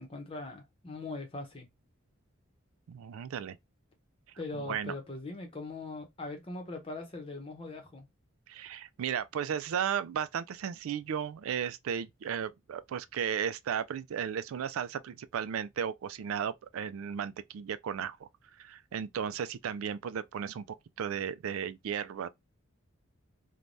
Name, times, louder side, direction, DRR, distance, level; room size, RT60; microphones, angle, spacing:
voice 1, 0.0-1.7 4.4-8.1, left 2 dB, 25° left, 0.7 m, -41 dB
voice 2, 2.9-3.6 4.5-4.9 8.5-18.3 18.6-20.6 21.0-22.3, right 8 dB, 85° right, 0.3 m, -35 dB
3.2 x 2.2 x 2.6 m
head